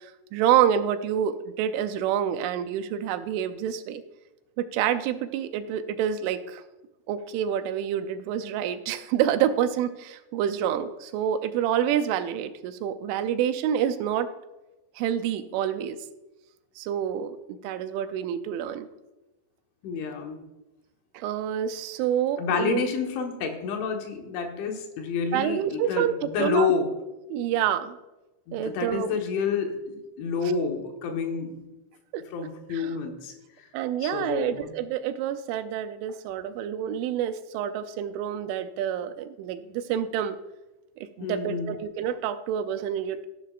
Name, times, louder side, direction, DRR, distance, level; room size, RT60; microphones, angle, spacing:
voice 1, 0.0-4.0 4.6-6.6 7.1-14.3 15.0-16.0 16.8-18.9 21.1-22.8 25.3-26.7 27.3-28.0 28.5-29.2 32.1-32.2 32.7-33.0 33.7-40.4 41.0-43.3, right 9 dB, 85° right, 10 dB, 3.1 m, -27 dB
voice 2, 19.8-20.4 22.4-26.9 28.5-31.6 32.3-33.3 33.6-33.7 34.0-34.8 41.2-41.7, left 5 dB, 80° left, 3 dB, 3.7 m, -29 dB
14.0 x 11.5 x 2.5 m, 1.0 s
omnidirectional pair, 5.4 m